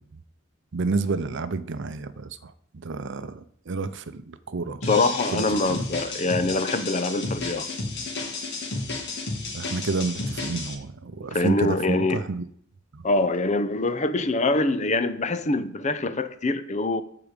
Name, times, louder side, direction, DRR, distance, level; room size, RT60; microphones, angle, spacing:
voice 1, 0.7-4.8 5.3-5.8 9.5-12.4 12.9-13.0, right 3 dB, 60° right, 0.6 m, -30 dB
sound 1, 4.8-10.7, left 3 dB, 55° left, 2.2 m, -32 dB
voice 2, 4.8-7.7 11.3-12.2 13.0-17.0, left 2 dB, 35° left, 0.7 m, -24 dB
14.5 x 4.9 x 5.1 m
head